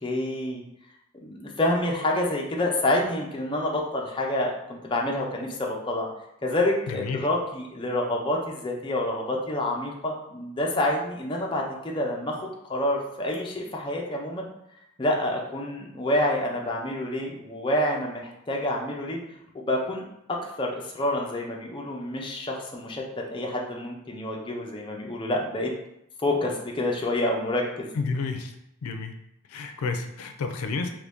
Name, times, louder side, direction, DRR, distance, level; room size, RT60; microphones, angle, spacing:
voice 1, 0.0-0.6 1.2-6.1 6.4-14.4 15.0-19.2 19.5-20.0 20.3-23.0 23.3-25.7 26.2-27.9, left 1 dB, 20° left, -1 dB, 0.4 m, -28 dB
voice 2, 6.9-7.2 27.9-28.6 28.8-29.1 29.5-30.9, left 4 dB, 90° left, 6 dB, 0.4 m, -30 dB
3.0 x 2.6 x 3.4 m, 0.80 s
head